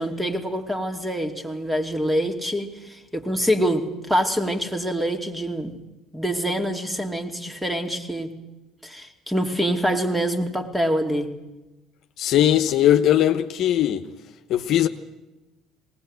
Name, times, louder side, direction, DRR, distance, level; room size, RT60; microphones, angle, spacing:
voice 1, 0.0-5.7 6.1-8.3 8.8-11.3, equal, 5° right, 2.6 m, -25 dB
voice 2, 12.2-14.1 14.5-14.9, left 11 dB, 60° left, 1.0 m, -19 dB
19.5 x 18.5 x 8.2 m
supercardioid pair, 85°, 0 cm